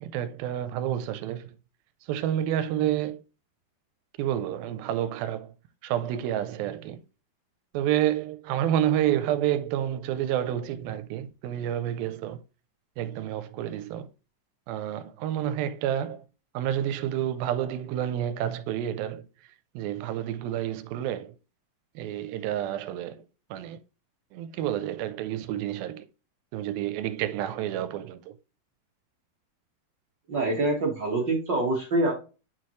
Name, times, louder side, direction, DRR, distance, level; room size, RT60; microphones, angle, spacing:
voice 1, 0.0-1.5 2.1-3.2 4.2-5.5 5.8-7.0 7.7-12.4 13.0-14.1 14.7-16.2 16.5-19.2 19.8-21.4 22.0-23.2 23.5-23.8 24.3-26.1 26.5-28.3, right 11 dB, 85° right, 2.4 m, -29 dB
voice 2, 30.3-32.1, right 2 dB, 55° right, 1.3 m, -25 dB
9.1 x 4.5 x 3.1 m
omnidirectional pair, 4.1 m